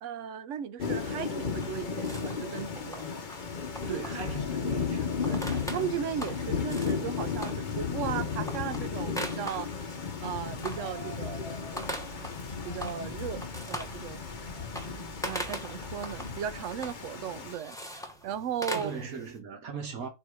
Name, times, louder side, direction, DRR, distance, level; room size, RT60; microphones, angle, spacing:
voice 1, 0.0-3.1 5.2-12.1 12.4-14.3 14.8-15.0 15.2-18.9, right 8 dB, 65° right, 0.9 m, -37 dB
Thunder / Rain, 0.8-17.5, left 5 dB, 40° left, 0.9 m, -34 dB
sound 1, 1.6-19.4, equal, 5° left, 1.0 m, -42 dB
voice 2, 3.9-5.1 18.7-20.1, right 6 dB, 80° right, 1.8 m, -38 dB
sound 2, 11.7-16.6, right 4 dB, 35° right, 1.1 m, -51 dB
7.1 x 2.8 x 4.9 m
omnidirectional pair, 1.5 m